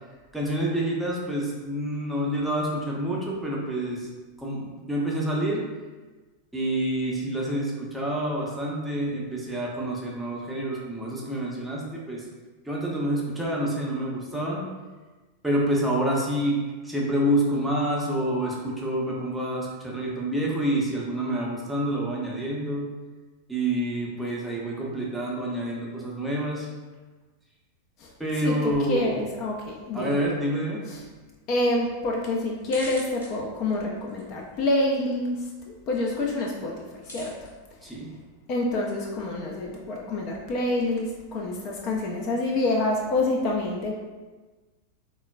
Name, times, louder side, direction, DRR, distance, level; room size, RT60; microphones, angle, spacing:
voice 1, 0.3-4.1 4.4-5.6 6.5-12.2 12.7-14.6 15.4-22.9 23.5-26.7 28.2-29.2 29.9-30.8 37.8-38.1, right 1 dB, 5° right, -4 dB, 0.6 m, -27 dB
voice 2, 28.0-30.2 30.9-31.0 31.5-37.3 38.5-43.9, left 2 dB, 40° left, -1 dB, 0.3 m, -27 dB
sound 1, 30.9-42.1, equal, 70° left, 1.0 m, -50 dB
3.7 x 2.0 x 2.2 m, 1.3 s
figure-of-eight pair, 90°, 0 cm